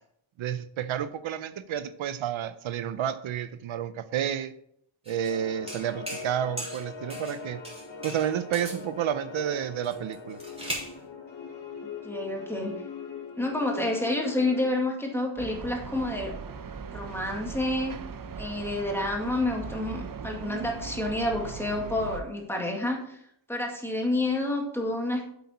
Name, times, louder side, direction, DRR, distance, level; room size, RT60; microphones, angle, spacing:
voice 1, 0.4-4.5 5.1-7.6 8.0-10.4, right 9 dB, 80° right, 13 dB, 0.7 m, -30 dB
sound 1, 5.0-5.3 5.7-6.3 6.6-7.4 7.6-8.8 9.8-10.9, equal, 15° right, 3.5 m, -38 dB
sound 2, 5.3-14.7, left 5 dB, 70° left, 2.2 m, -41 dB
voice 2, 12.0-12.7 13.4-16.4 16.9-17.9 18.4-23.2 23.5-25.3, left 1 dB, 5° left, 0 dB, 2.0 m, -29 dB
sound 3, 15.4-22.2, right 5 dB, 45° right, 0.8 m, -39 dB
8.3 x 8.2 x 4.2 m, 0.71 s
wide cardioid pair, 140°, 47 cm